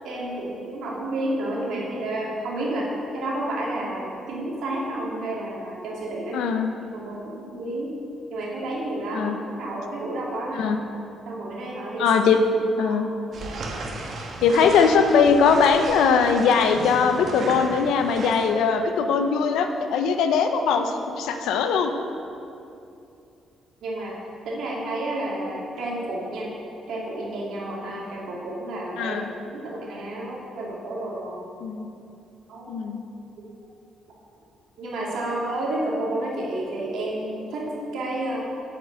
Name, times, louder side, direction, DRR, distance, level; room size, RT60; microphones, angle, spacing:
voice 1, 0.0-6.5 6.9-7.9 8.3-9.3 9.6-10.7 11.3-12.1 12.8-13.0 21.3-21.4 23.8-24.2 24.4-26.5 26.9-29.2 29.5-31.4 32.5-32.7 33.4-33.5 34.8-38.4, right 1 dB, 80° right, -4 dB, 2.3 m, -30 dB
voice 2, 6.3-6.7 9.1-9.4 10.5-10.8 12.0-13.1 14.4-21.9 29.0-29.3 31.6-31.9 32.7-33.0, left 5 dB, 85° left, 6 dB, 0.6 m, -20 dB
sound 1, 13.3-18.5, right 2 dB, 60° right, 1.2 m, -35 dB
8.6 x 5.1 x 7.6 m, 2.6 s
cardioid pair, 90°, 0 cm